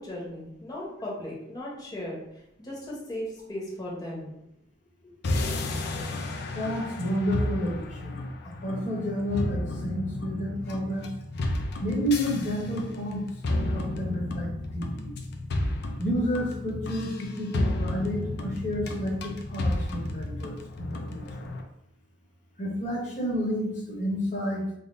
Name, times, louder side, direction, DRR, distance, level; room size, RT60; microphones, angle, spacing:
voice 1, 0.0-4.4, left 1 dB, 20° left, -5 dB, 1.0 m, -37 dB
sound 1, 5.2-21.6, left 2 dB, 60° left, 0.4 m, -32 dB
voice 2, 6.5-8.2 8.6-11.1 11.8-13.2 13.6-14.5 14.7-15.2 16.0-21.5 22.6-24.7, equal, 45° left, -3 dB, 1.1 m, -30 dB
3.7 x 2.1 x 3.8 m, 0.78 s
head